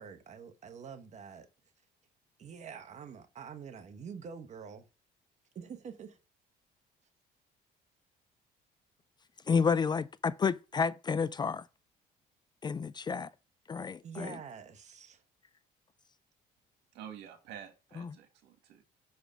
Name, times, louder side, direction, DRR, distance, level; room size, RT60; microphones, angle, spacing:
voice 1, 0.0-1.5 2.4-4.9 5.5-6.2 14.0-15.2, right 6 dB, 45° right, 1.2 m, -46 dB
voice 2, 9.5-11.6 12.6-13.3 13.7-14.4 18.0-18.2, left 5 dB, 25° left, 0.4 m, -30 dB
voice 3, 16.9-18.8, right 9 dB, 85° right, 1.9 m, -49 dB
6.6 x 5.0 x 6.1 m
cardioid pair, 110°, 17 cm